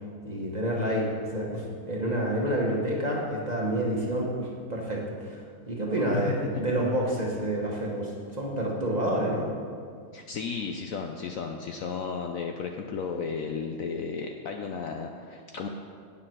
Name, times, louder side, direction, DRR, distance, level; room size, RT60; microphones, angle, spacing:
voice 1, 0.2-9.5, right 1 dB, 25° right, -3 dB, 1.3 m, -29 dB
voice 2, 10.1-15.7, left 5 dB, 65° left, 3 dB, 0.9 m, -34 dB
9.0 x 7.4 x 6.1 m, 2.2 s
omnidirectional pair, 1.8 m